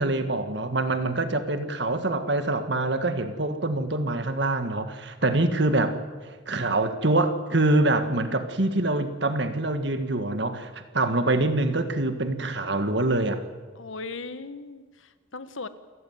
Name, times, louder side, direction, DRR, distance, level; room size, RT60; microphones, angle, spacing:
voice 1, 0.0-6.0 6.5-13.4, right 2 dB, 60° right, 9 dB, 1.8 m, -25 dB
voice 2, 13.7-15.7, left 3 dB, 85° left, 12 dB, 1.5 m, -39 dB
28.5 x 14.5 x 9.5 m, 1.4 s
head